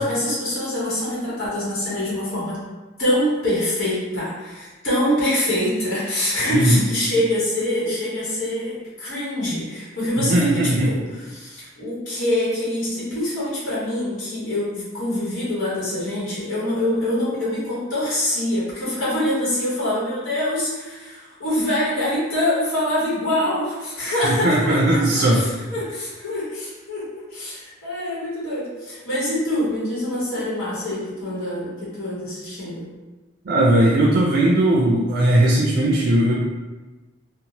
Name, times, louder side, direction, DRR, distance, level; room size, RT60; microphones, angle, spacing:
voice 1, 0.0-2.6 3.0-27.0 27.3-32.8, left 1 dB, 85° left, -8 dB, 1.0 m, -25 dB
voice 2, 6.5-6.8 10.2-10.9 24.2-25.4 33.5-36.3, right 1 dB, 50° right, -3 dB, 0.3 m, -18 dB
2.8 x 2.0 x 2.7 m, 1.2 s
head